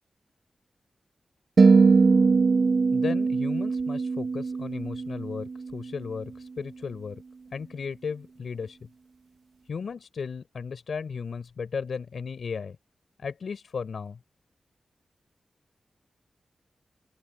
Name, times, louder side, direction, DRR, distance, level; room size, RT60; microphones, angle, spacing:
sound 1, 1.6-5.9, right 4 dB, 55° right, 1.4 m, -21 dB
voice 1, 2.9-7.2 7.5-8.8 9.7-12.8 13.2-14.2, left 5 dB, 70° left, 5.1 m, -35 dB
open air
wide cardioid pair, 120°, 0 cm